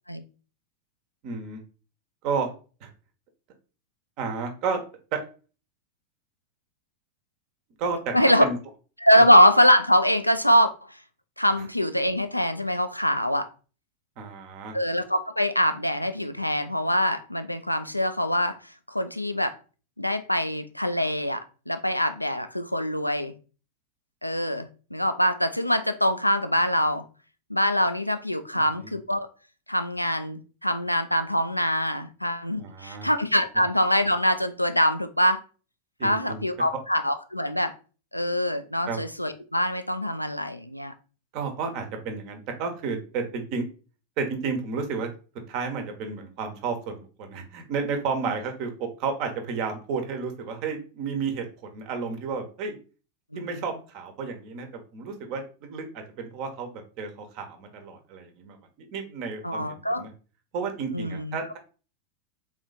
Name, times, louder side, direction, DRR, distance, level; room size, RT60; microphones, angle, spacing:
voice 1, 1.2-1.6 2.2-2.5 2.8-2.9 4.2-4.8 5.1-5.2 7.8-8.1 8.4-8.6 14.2-14.7 28.5-28.9 32.5-33.1 36.0-36.4 38.9-39.0 41.3-43.6 44.2-45.1 45.5-52.7 53.3-54.7 54.9-58.6 58.9-60.1 60.5-61.6, right 5 dB, 45° right, 1.0 m, -32 dB
voice 2, 8.1-8.4 9.0-10.7 11.4-13.5 14.7-18.6 18.9-19.6 20.0-23.3 24.2-27.0 27.5-29.3 29.7-35.4 36.0-37.7 38.1-40.9 53.3-53.6 59.4-60.0 60.9-61.4, equal, 90° left, 0.4 m, -23 dB
4.0 x 3.0 x 3.9 m
figure-of-eight pair, 90°, 0 cm